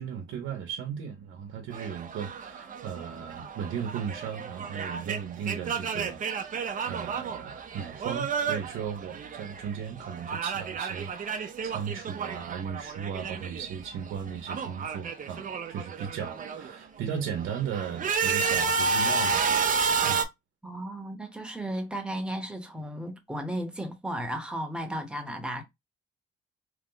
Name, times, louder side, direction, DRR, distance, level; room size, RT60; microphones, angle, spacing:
voice 1, 0.0-19.6 20.0-20.3, right 7 dB, 80° right, 0.7 m, -36 dB
sound 1, 1.7-9.7 10.0-13.8 14.0-16.7 17.2-20.3, right 5 dB, 40° right, 0.5 m, -31 dB
voice 2, 20.6-25.6, right 1 dB, 5° right, 0.9 m, -34 dB
2.9 x 2.0 x 3.8 m
cardioid pair, 90°, 20 cm